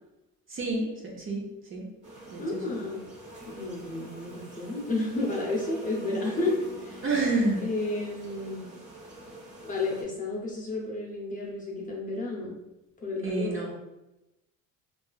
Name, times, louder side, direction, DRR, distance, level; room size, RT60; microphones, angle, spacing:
voice 1, 0.5-1.9 2.3-2.6 7.0-7.6 13.2-13.7, right 2 dB, 40° right, -1 dB, 0.6 m, -29 dB
sound 1, 2.0-10.0, equal, 20° right, 1.0 m, -45 dB
voice 2, 2.4-3.0 3.5-7.0 7.6-8.7 9.6-12.6 13.0-13.6, left 2 dB, 25° left, -4 dB, 0.7 m, -31 dB
2.8 x 2.4 x 2.3 m, 0.96 s
cardioid pair, 100°, 34 cm